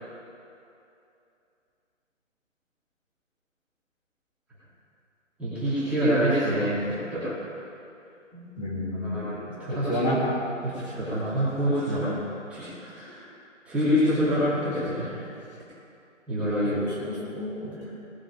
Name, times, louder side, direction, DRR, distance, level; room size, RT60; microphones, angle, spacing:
voice 1, 5.4-7.2 8.3-8.4 9.0-10.0 10.6-12.0 12.5-13.1 13.6-15.1 16.3-16.7, equal, 5° right, -16 dB, 3.0 m, -26 dB
voice 2, 8.6-9.3 9.7-10.2 16.7-17.9, equal, 35° left, -6 dB, 3.3 m, -30 dB
19.0 x 9.1 x 5.0 m, 2.6 s
figure-of-eight pair, 160°, 39 cm